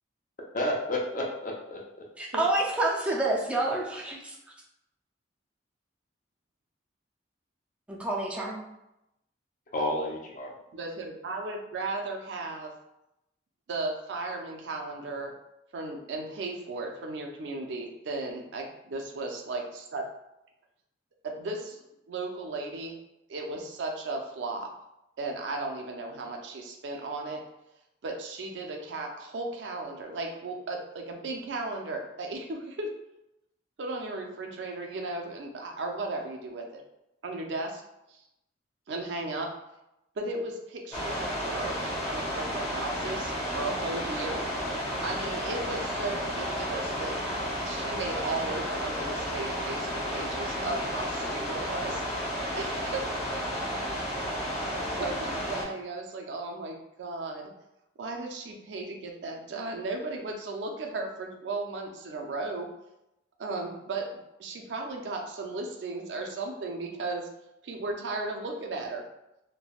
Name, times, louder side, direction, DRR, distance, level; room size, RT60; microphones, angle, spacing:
voice 1, 0.5-1.8 9.7-10.5, left 1 dB, 45° left, -2 dB, 0.6 m, -30 dB
voice 2, 2.2-4.2 7.9-8.6, right 2 dB, 5° right, -2 dB, 0.4 m, -28 dB
voice 3, 10.7-12.7 13.7-15.3 15.7-20.0 21.2-21.8 22.1-23.0 23.3-24.7 25.2-27.4 28.0-32.9 33.8-36.8 37.2-37.8 38.1-38.2 38.9-39.5 40.2-44.4 45.0-47.2 47.6-52.0 52.6-53.8 55.0-57.5 58.0-62.7 63.4-64.1 64.4-67.3 67.6-69.0, right 2 dB, 70° right, 2 dB, 0.4 m, -35 dB
sound 1, 40.9-55.6, equal, 20° left, 0.9 m, -32 dB
3.2 x 2.1 x 2.3 m, 0.87 s
head